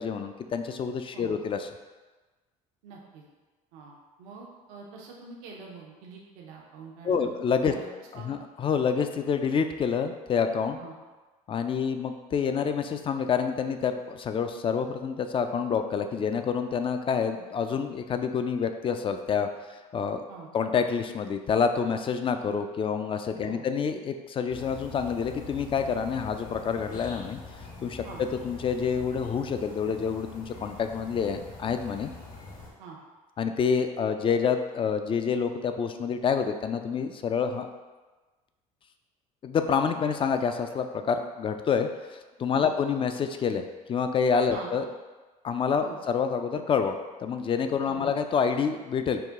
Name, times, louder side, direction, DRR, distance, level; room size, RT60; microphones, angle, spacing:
voice 1, 0.0-1.7 7.0-7.7 8.2-10.8 11.5-19.5 19.9-20.2 20.5-27.4 27.8-32.1 33.4-37.7 39.4-44.8 45.4-47.0 47.2-49.2, left 6 dB, 30° left, 7 dB, 0.3 m, -27 dB
voice 2, 2.8-3.2 3.7-7.4 7.6-7.9 8.1-8.3 10.8-10.9 20.3-20.5 23.4-23.6 28.0-28.2 32.8-33.0 42.5-42.7 44.5-44.7 45.8-46.0 47.8-48.1, right 5 dB, 85° right, -2 dB, 0.7 m, -45 dB
sound 1, 24.5-32.7, left 3 dB, 50° left, 1.1 m, -44 dB
4.7 x 2.2 x 3.5 m, 1.3 s
supercardioid pair, 85°, 17 cm